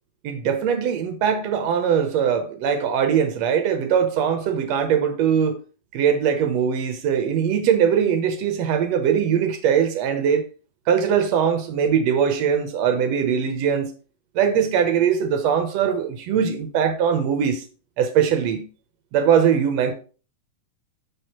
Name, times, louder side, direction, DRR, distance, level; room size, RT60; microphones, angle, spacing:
voice 1, 0.2-5.6 5.9-10.5 10.9-13.9 14.4-17.6 18.0-18.6 19.1-19.9, right 8 dB, 70° right, 1.8 m, -21 dB
6.7 x 6.4 x 2.9 m
omnidirectional pair, 3.5 m